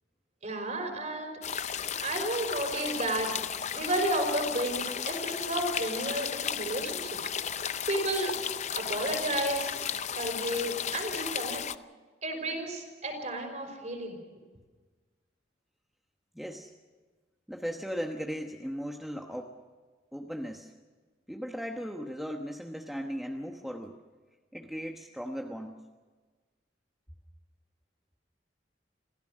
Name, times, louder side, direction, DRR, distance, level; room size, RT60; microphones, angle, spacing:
voice 1, 0.4-1.3 2.0-3.3 3.7-7.2 7.9-8.3 8.7-9.8 10.2-11.6 12.2-14.2, right 1 dB, 40° right, 4 dB, 5.2 m, -32 dB
sound 1, 1.4-11.7, left 8 dB, 40° left, 0.6 m, -34 dB
voice 2, 16.3-16.7 17.5-19.5 20.1-20.7 21.3-24.0 24.5-25.8, equal, ahead, 2 dB, 1.1 m, -37 dB
26.5 x 16.0 x 6.4 m, 1.4 s
head